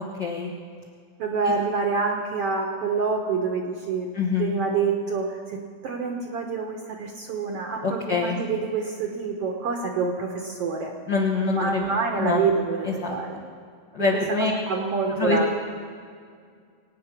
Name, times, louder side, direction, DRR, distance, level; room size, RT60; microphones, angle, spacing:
voice 1, 0.2-0.5 1.4-1.5 4.1-4.6 7.8-8.4 11.1-11.9 12.2-12.4 12.8-13.2 13.9-14.5 15.1-15.6, left 4 dB, 65° left, -1 dB, 1.1 m, -25 dB
voice 2, 1.2-4.1 4.3-10.9 11.5-13.4 14.7-15.6, right 5 dB, 65° right, 2 dB, 1.5 m, -27 dB
22.5 x 9.3 x 5.8 m, 2.1 s
omnidirectional pair, 3.8 m